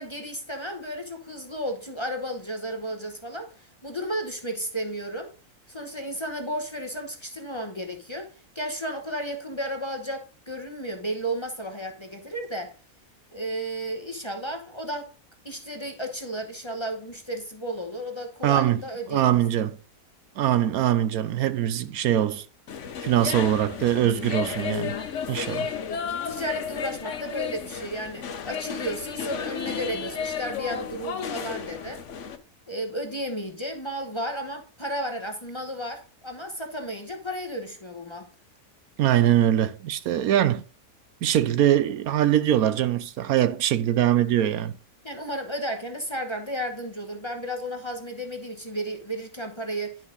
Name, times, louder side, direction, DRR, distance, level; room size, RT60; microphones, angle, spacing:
voice 1, 0.0-5.3 5.7-12.7 13.3-15.1 15.4-19.4 26.1-32.0 32.7-38.3 45.0-50.0, right 1 dB, 20° left, 1.0 m, -33 dB
voice 2, 18.4-18.8 19.1-19.8 20.4-22.4 23.0-24.9 25.3-25.7 39.0-40.6 41.2-44.7, right 11 dB, 75° right, 1.1 m, -22 dB
sound 1, 22.7-32.4, left 7 dB, 55° left, 1.1 m, -33 dB
10.5 x 5.7 x 3.8 m
omnidirectional pair, 1.6 m